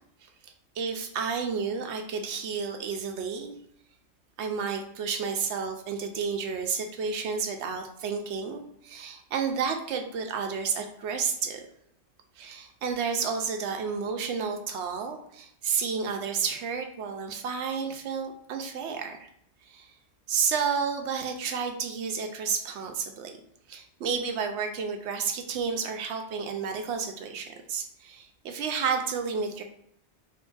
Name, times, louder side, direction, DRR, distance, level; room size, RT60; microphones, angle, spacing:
voice 1, 0.2-3.5 4.4-11.7 12.4-19.3 19.6-19.9 20.3-23.4 23.7-29.6, right 6 dB, 75° right, 4 dB, 0.9 m, -31 dB
2.8 x 2.5 x 3.8 m, 0.72 s
omnidirectional pair, 1.2 m